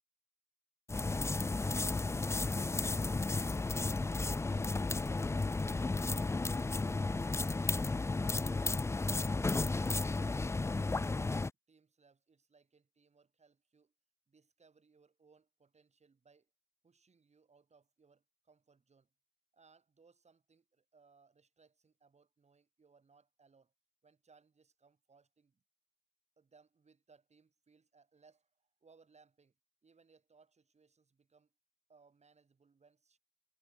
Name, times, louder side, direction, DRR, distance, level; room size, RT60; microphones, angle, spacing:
sound 1, 0.9-11.5, left 3 dB, 15° left, 0.5 m, -33 dB
voice 1, 11.7-13.9 14.3-16.5 16.8-19.1 19.5-23.7 24.0-25.6 26.4-29.5 29.8-31.5 31.9-33.2, right 5 dB, 35° right, 7.2 m, -67 dB
cardioid pair, 90°, 20 cm